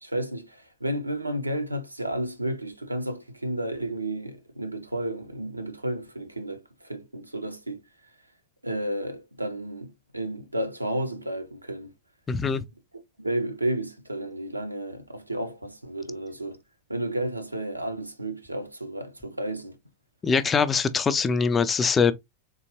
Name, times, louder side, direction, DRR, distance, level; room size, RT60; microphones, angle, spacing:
voice 1, 0.0-7.8 8.6-11.9 13.2-16.6 16.9-19.8, right 1 dB, 85° right, 0.5 m, -32 dB
voice 2, 12.3-12.6 20.2-22.1, left 5 dB, 20° left, 0.4 m, -23 dB
3.7 x 2.8 x 2.8 m
figure-of-eight pair, 90°, 0 cm